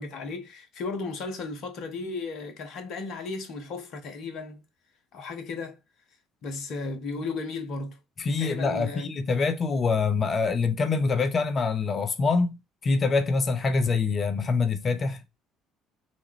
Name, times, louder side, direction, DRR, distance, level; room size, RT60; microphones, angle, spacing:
voice 1, 0.0-4.6 5.1-5.8 6.4-8.0 8.4-9.1, left 3 dB, 60° left, 1.0 m, -35 dB
voice 2, 8.2-12.6 12.8-15.2, left 4 dB, 40° left, 0.6 m, -25 dB
3.4 x 3.1 x 3.1 m
figure-of-eight pair, 55°, 0 cm